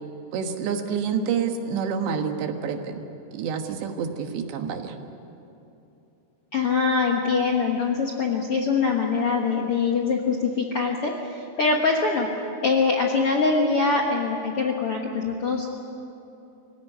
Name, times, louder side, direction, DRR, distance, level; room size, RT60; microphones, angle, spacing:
voice 1, 0.3-3.0 3.3-5.0, right 6 dB, 90° right, 5 dB, 3.8 m, -28 dB
voice 2, 6.5-12.3 12.6-15.6, left 4 dB, 85° left, 0 dB, 1.2 m, -23 dB
26.0 x 16.0 x 9.9 m, 2.8 s
omnidirectional pair, 4.9 m